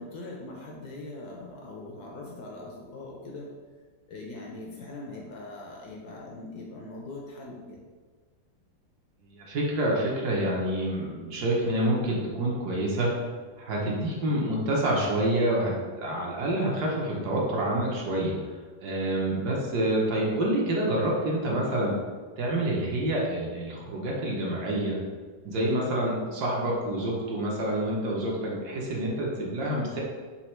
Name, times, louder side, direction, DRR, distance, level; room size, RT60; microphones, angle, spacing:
voice 1, 0.0-3.5 4.1-7.8, left 2 dB, 70° left, -1 dB, 1.0 m, -41 dB
voice 2, 9.4-13.1 13.6-18.3 18.8-21.9 22.4-25.0 25.4-30.0, right 1 dB, 65° right, -3 dB, 1.2 m, -27 dB
4.3 x 2.3 x 4.2 m, 1.4 s
omnidirectional pair, 2.0 m